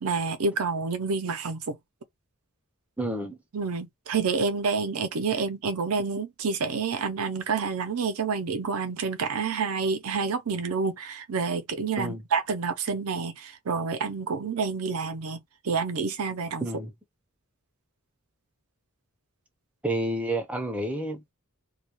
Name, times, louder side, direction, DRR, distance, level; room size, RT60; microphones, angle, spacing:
voice 1, 0.0-1.8 3.5-16.7, right 5 dB, 75° right, 0.6 m, -28 dB
voice 2, 3.0-3.4 12.0-12.2 16.6-16.9 19.8-21.3, right 1 dB, 5° right, 0.5 m, -30 dB
2.3 x 2.2 x 2.9 m
head